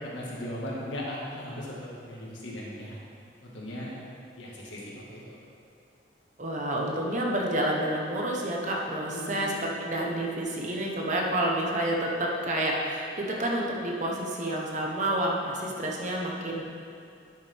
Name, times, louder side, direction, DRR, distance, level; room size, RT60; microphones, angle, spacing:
voice 1, 0.0-1.7 2.0-3.0 3.4-3.9 4.4-5.4 9.1-9.4, left 1 dB, 90° left, -5 dB, 2.0 m, -38 dB
voice 2, 6.4-16.6, right 1 dB, 40° right, -1 dB, 1.1 m, -29 dB
11.5 x 6.6 x 3.6 m, 2.4 s
head